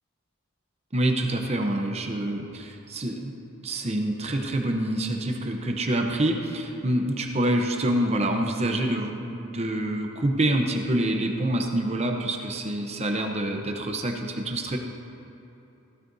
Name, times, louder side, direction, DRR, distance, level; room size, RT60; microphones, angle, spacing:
voice 1, 0.9-3.3 3.6-14.8, right 1 dB, 30° right, 2 dB, 0.8 m, -26 dB
15.5 x 12.5 x 2.7 m, 3.0 s
head